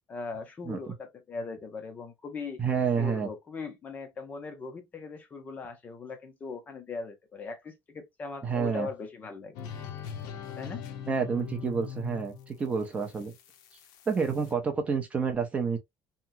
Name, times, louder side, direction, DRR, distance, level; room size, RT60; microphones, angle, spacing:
voice 1, 0.1-2.6 3.0-9.6 10.6-10.8, left 4 dB, 20° left, 0.6 m, -39 dB
voice 2, 2.6-3.3 8.4-8.9 11.1-13.3 14.1-15.8, right 6 dB, 20° right, 0.5 m, -29 dB
sound 1, 9.5-14.5, left 8 dB, 65° left, 0.6 m, -42 dB
2.9 x 2.3 x 2.5 m
cardioid pair, 180°, 7 cm